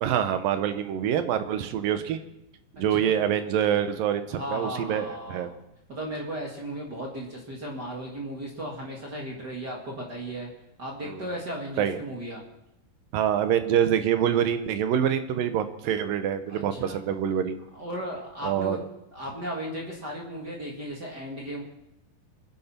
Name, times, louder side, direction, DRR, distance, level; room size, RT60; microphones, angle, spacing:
voice 1, 0.0-2.2 2.8-5.5 11.1-11.2 11.8-12.0 13.1-17.6 18.4-18.8, right 9 dB, 85° right, 9 dB, 2.7 m, -25 dB
voice 2, 2.9-3.4 4.3-5.5 5.9-10.5 10.8-12.4 16.5-17.0 17.7-18.8 19.1-21.6, equal, 35° right, -2 dB, 2.2 m, -35 dB
26.5 x 10.5 x 4.4 m, 0.85 s
omnidirectional pair, 3.9 m